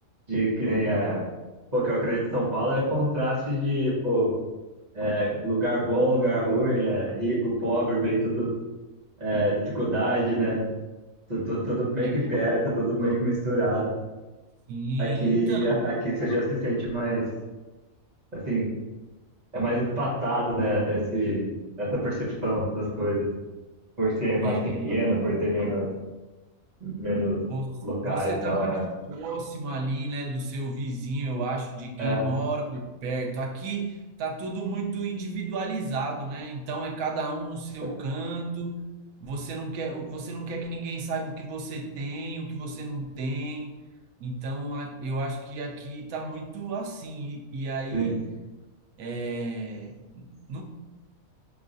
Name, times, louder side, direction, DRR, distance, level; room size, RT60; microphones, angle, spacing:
voice 1, 0.3-1.2 1.7-4.3 4.9-8.5 9.2-10.6 11.3-13.9 15.0-17.3 18.3-18.7 19.5-21.5 21.8-23.3 24.0-25.9 26.8-27.4 27.8-28.8 32.0-32.3 47.9-48.2, right 1 dB, 35° right, -8 dB, 1.1 m, -26 dB
voice 2, 14.7-15.8 24.4-24.9 27.5-27.8 28.0-28.8 29.1-38.8 39.2-43.7 44.2-48.1 49.0-50.6, right 2 dB, 80° right, 2 dB, 1.0 m, -32 dB
4.5 x 3.1 x 2.5 m, 1.2 s
omnidirectional pair, 1.4 m